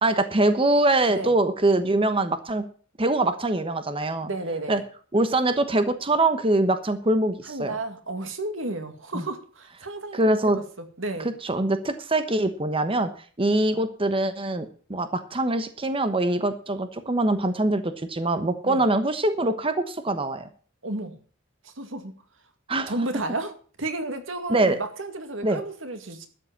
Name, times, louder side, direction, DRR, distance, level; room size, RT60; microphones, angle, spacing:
voice 1, 0.0-2.6 3.0-4.3 4.7-4.8 5.1-7.7 9.1-9.2 10.1-10.6 11.4-13.1 13.4-20.5 22.7-22.9 24.5-24.8 25.4-25.6, right 2 dB, 30° right, 9 dB, 1.1 m, -23 dB
voice 2, 4.2-4.8 7.5-11.3 18.6-18.8 20.8-21.2 21.6-22.1 22.9-23.5 23.8-26.3, right 2 dB, 90° right, 7 dB, 2.1 m, -32 dB
12.5 x 7.8 x 7.2 m, 0.42 s
head